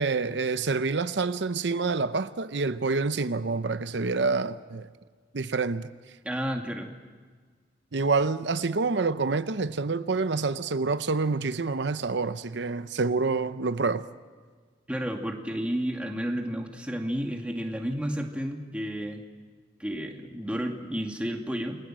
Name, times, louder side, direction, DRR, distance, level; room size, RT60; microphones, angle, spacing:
voice 1, 0.0-4.9 5.3-5.9 7.9-14.1, right 4 dB, 80° right, 0.7 m, -27 dB
voice 2, 6.2-6.9 14.9-19.2 19.8-21.8, equal, 5° right, 2.2 m, -31 dB
29.0 x 21.5 x 7.5 m
head